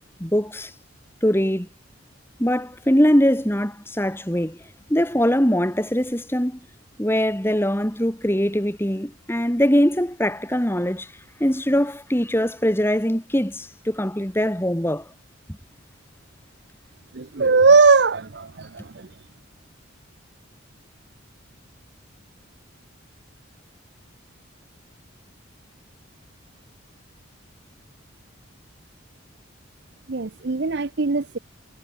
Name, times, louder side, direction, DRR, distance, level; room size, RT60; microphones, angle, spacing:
voice 1, 0.2-0.8 1.2-1.7 2.4-6.6 7.0-15.1, equal, 10° left, 2.6 m, -22 dB
voice 2, 17.2-18.5 30.1-31.4, right 4 dB, 55° right, 0.7 m, -18 dB
head